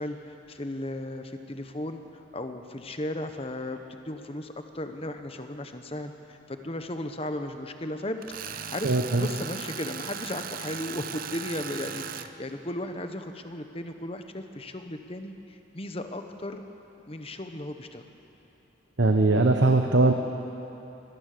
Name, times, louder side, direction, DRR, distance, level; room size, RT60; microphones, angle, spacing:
voice 1, 0.0-16.6 17.1-18.0, left 1 dB, 30° left, 7 dB, 1.1 m, -36 dB
Tools, 8.2-12.3, right 7 dB, 45° right, 0.7 m, -37 dB
voice 2, 8.8-9.3 19.0-20.1, right 2 dB, 65° right, 4 dB, 1.0 m, -20 dB
24.0 x 18.0 x 6.8 m, 2.9 s
head